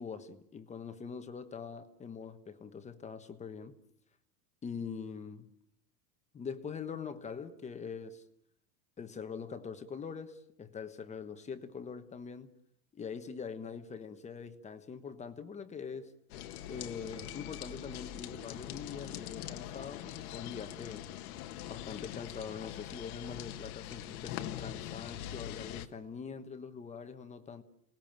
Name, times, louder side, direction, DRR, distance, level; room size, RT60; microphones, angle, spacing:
voice 1, 0.0-3.8 4.6-5.5 6.3-8.2 9.0-12.5 12.9-16.1 16.7-21.0 21.6-27.6, left 6 dB, 15° left, 1.3 m, -43 dB
sound 1, 16.3-25.9, left 12 dB, 65° left, 1.7 m, -43 dB
28.5 x 19.5 x 9.0 m
supercardioid pair, 160°, 48 cm